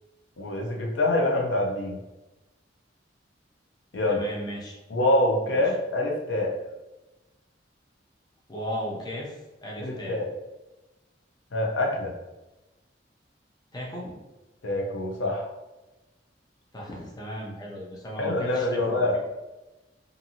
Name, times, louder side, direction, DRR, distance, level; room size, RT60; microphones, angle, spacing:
voice 1, 0.4-2.0 3.9-4.2 4.9-6.5 9.8-10.3 11.5-12.1 14.6-15.5 18.2-19.2, left 1 dB, 90° left, 0 dB, 0.5 m, -25 dB
voice 2, 4.1-4.8 5.4-5.6 8.5-10.2 13.7-14.2 16.7-19.1, equal, 20° left, -2 dB, 0.5 m, -36 dB
2.6 x 2.6 x 2.7 m, 1.0 s
head